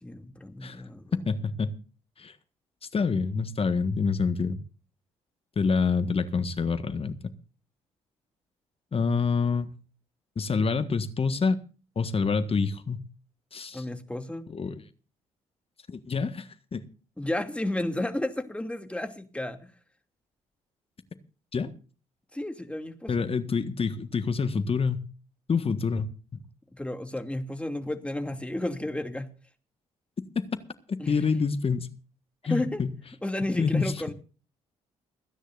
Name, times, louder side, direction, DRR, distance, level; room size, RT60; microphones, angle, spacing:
voice 1, 0.0-1.1 13.7-14.5 17.2-19.7 22.3-23.3 26.8-29.3 31.0-31.2 32.5-32.8 33.2-34.1, left 1 dB, 5° left, 2.6 m, -32 dB
voice 2, 1.3-1.7 2.2-2.3 2.9-4.6 5.5-7.2 8.9-9.7 10.4-11.6 11.9-13.0 13.5-13.8 14.5-14.8 15.9-16.8 21.5-21.7 23.1-25.1 25.5-26.4 31.1-31.9 32.4-32.9 33.6-33.9, left 5 dB, 40° left, 1.6 m, -27 dB
29.5 x 10.0 x 2.6 m
hypercardioid pair, 45°, 15 cm